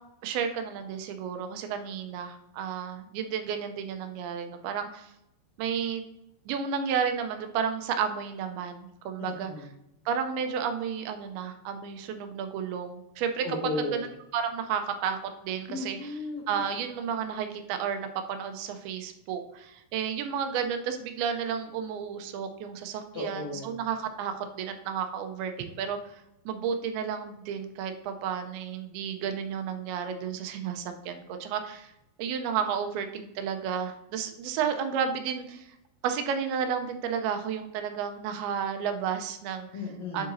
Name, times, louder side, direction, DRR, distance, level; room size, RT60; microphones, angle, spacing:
voice 1, 0.2-5.1 5.6-6.0 6.5-9.5 10.1-13.5 13.8-14.1 14.3-16.1 16.5-31.9 32.2-35.7 36.0-39.7 40.1-40.3, right 7 dB, 85° right, 7 dB, 2.5 m, -32 dB
voice 2, 9.2-9.7 13.4-14.0 15.7-16.6 23.1-23.8 39.7-40.3, left 2 dB, 90° left, 0 dB, 1.5 m, -35 dB
9.3 x 3.9 x 2.6 m, 0.85 s
omnidirectional pair, 4.4 m